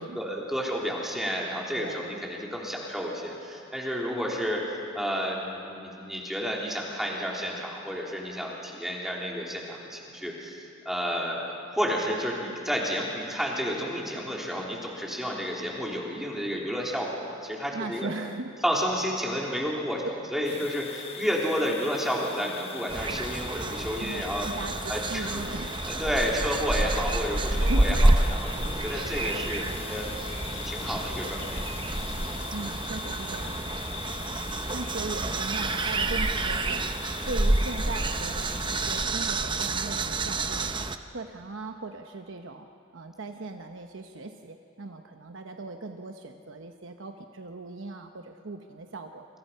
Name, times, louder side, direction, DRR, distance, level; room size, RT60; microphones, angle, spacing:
voice 1, 0.0-18.1 18.6-20.0 20.3-24.5 24.9-25.4 25.9-30.1 30.5-31.6, equal, ahead, -3 dB, 3.4 m, -31 dB
voice 2, 1.8-2.1 17.7-18.6 19.5-19.6 20.5-20.7 24.0-25.8 27.6-28.0 32.5-33.6 34.7-36.9 37.3-42.7 42.9-49.2, right 3 dB, 65° right, 5 dB, 1.0 m, -38 dB
sound 1, 20.4-39.1, left 5 dB, 30° left, 1.0 m, -41 dB
sound 2, 22.9-41.0, right 2 dB, 25° right, 0.8 m, -28 dB
28.5 x 26.0 x 5.7 m, 2.6 s
head